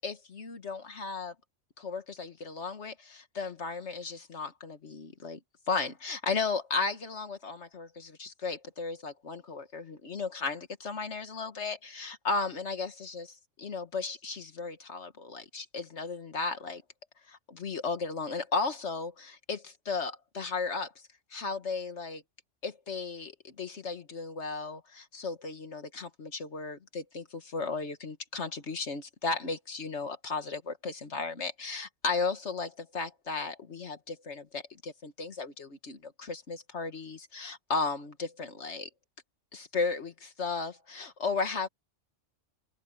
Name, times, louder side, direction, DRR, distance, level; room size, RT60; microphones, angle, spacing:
voice 1, 0.0-1.3 1.8-5.4 5.7-16.8 17.3-20.9 21.3-22.2 22.6-32.7 32.9-38.9 39.5-41.7, left 4 dB, 65° left, 1.7 m, -35 dB
omnidirectional pair, 1.3 m